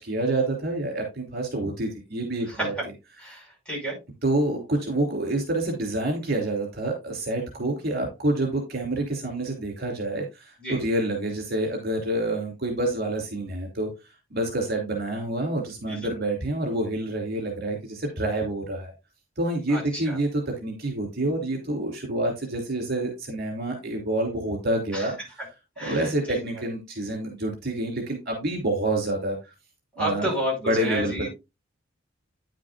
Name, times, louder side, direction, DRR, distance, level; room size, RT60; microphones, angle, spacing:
voice 1, 0.0-2.7 4.2-13.9 14.3-18.9 19.4-25.5 25.8-29.4 30.0-30.3 30.6-31.3, right 1 dB, 55° right, 2 dB, 2.9 m, -27 dB
voice 2, 3.2-3.9 10.6-10.8 15.9-16.1 19.7-19.8 20.1-20.2 24.9-25.1 25.8-26.4 30.0-30.5 30.8-31.3, equal, 5° left, -3 dB, 5.2 m, -30 dB
9.7 x 7.5 x 2.5 m, 0.24 s
head